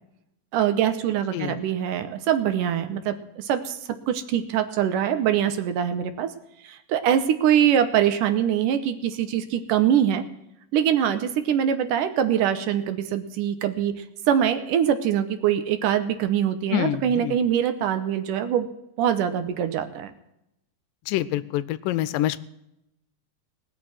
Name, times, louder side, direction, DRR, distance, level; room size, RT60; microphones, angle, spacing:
voice 1, 0.5-3.8 4.1-6.3 6.6-10.3 10.7-18.7 19.0-20.1, right 9 dB, 75° right, 10 dB, 2.4 m, -23 dB
voice 2, 16.7-17.4 21.1-22.4, left 14 dB, 80° left, 16 dB, 2.2 m, -26 dB
20.0 x 6.8 x 5.9 m, 0.84 s
omnidirectional pair, 4.0 m